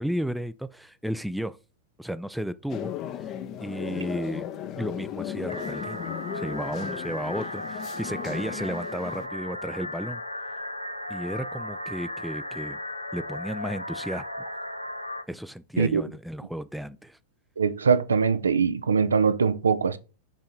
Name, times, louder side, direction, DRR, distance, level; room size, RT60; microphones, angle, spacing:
voice 1, 0.0-1.6 2.0-2.9 3.2-4.5 4.8-10.2 11.1-12.8 13.1-14.5 15.3-17.2, equal, ahead, 0.3 m, -33 dB
sound 1, 2.7-9.3, left 10 dB, 35° left, 0.6 m, -36 dB
sound 2, 5.5-15.2, left 1 dB, 85° left, 0.6 m, -36 dB
voice 2, 17.6-20.0, right 5 dB, 70° right, 0.5 m, -22 dB
5.7 x 3.8 x 4.5 m
figure-of-eight pair, 90°, 0 cm